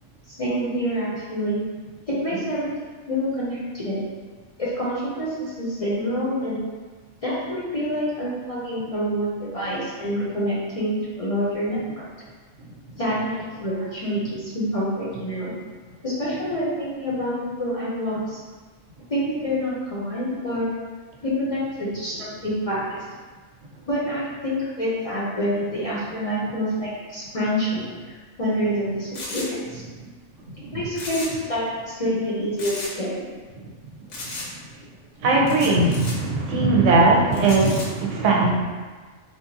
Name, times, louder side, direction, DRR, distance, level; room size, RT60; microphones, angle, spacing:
voice 1, 0.3-1.6 2.1-2.7 3.1-4.1 4.6-6.6 7.2-12.1 13.0-15.5 16.0-18.4 19.1-20.7 21.2-23.0 23.9-29.8 30.7-33.3, equal, 40° left, -8 dB, 0.5 m, -27 dB
sound 1, 29.1-29.5 30.9-31.5 31.7-31.8 32.6-32.9 34.1-34.5 35.5-36.1 37.3-37.8, left 2 dB, 75° left, 1.0 m, -34 dB
voice 2, 35.2-38.5, right 3 dB, 90° right, -2 dB, 0.9 m, -19 dB
3.5 x 2.5 x 2.6 m, 1.4 s
omnidirectional pair, 1.3 m